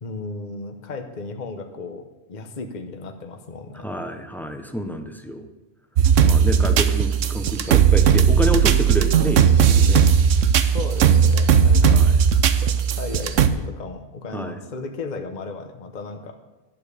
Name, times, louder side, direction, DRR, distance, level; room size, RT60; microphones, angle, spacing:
voice 1, 0.0-2.0 2.3-3.8 10.7-12.0 12.6-16.4, left 3 dB, 35° left, 5 dB, 1.0 m, -35 dB
voice 2, 3.8-5.5 6.2-10.0 11.8-12.2 14.3-14.6, equal, ahead, 6 dB, 0.8 m, -28 dB
sound 1, 6.0-13.5, right 7 dB, 65° right, 1.0 m, -17 dB
11.5 x 9.1 x 6.8 m, 1.1 s
omnidirectional pair, 1.5 m